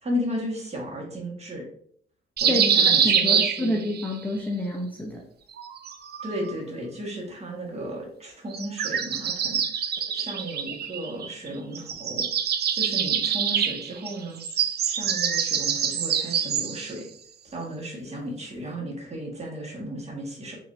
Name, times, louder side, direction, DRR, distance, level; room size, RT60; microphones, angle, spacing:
voice 1, 0.0-1.6 2.4-3.8 6.2-9.6 10.1-12.2 12.7-14.4 14.8-17.1 17.4-20.6, equal, 35° right, -1 dB, 1.7 m, -34 dB
sound 1, 2.4-4.1 5.5-6.6 8.5-11.5 11.8-16.9, right 7 dB, 55° right, 0.5 m, -25 dB
voice 2, 3.0-5.2, left 1 dB, 10° left, -1 dB, 0.7 m, -28 dB
5.3 x 3.2 x 2.7 m, 0.64 s
cardioid pair, 90°, 20 cm